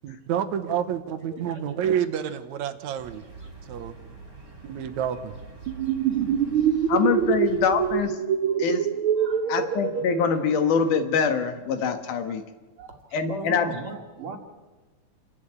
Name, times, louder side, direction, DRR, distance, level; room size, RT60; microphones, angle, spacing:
voice 1, 0.0-3.2 3.7-3.9 4.7-5.3, right 9 dB, 70° right, 10 dB, 2.2 m, -28 dB
voice 2, 1.4-2.1 6.1-6.9 8.5-8.7 9.2-9.6 12.2-12.3 12.8-14.4, right 3 dB, 45° right, 4 dB, 2.6 m, -40 dB
sound 1, 3.0-8.1, right 3 dB, 30° right, 3.1 m, -45 dB
sound 2, 5.7-11.0, right 9 dB, 85° right, 1.1 m, -25 dB
voice 3, 6.9-8.2 8.6-8.9 9.5-12.4 13.1-13.7, left 6 dB, 75° left, 7 dB, 3.0 m, -24 dB
28.0 x 11.5 x 8.7 m, 1.2 s
omnidirectional pair, 3.7 m